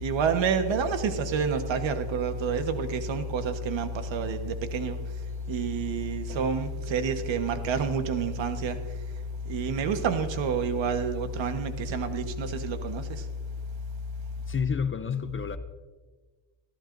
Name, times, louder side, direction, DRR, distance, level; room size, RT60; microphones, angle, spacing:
voice 1, 0.0-5.0 5.5-8.8 9.5-13.0, right 5 dB, 65° right, 1.3 m, -28 dB
voice 2, 14.5-15.6, left 6 dB, 25° left, 0.5 m, -29 dB
28.0 x 13.5 x 2.6 m
cardioid pair, 155°, 48 cm